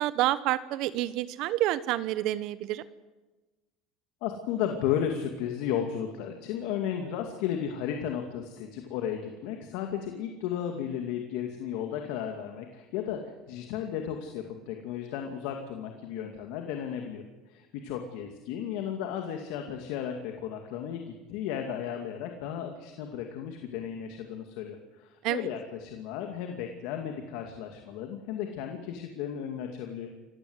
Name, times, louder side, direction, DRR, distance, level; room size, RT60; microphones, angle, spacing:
voice 1, 0.0-2.8 25.2-25.5, right 15 dB, 65° right, 15 dB, 1.0 m, -28 dB
voice 2, 4.2-30.1, left 9 dB, 75° left, 4 dB, 2.4 m, -34 dB
27.0 x 15.0 x 8.1 m, 1.2 s
supercardioid pair, 100°, 0 cm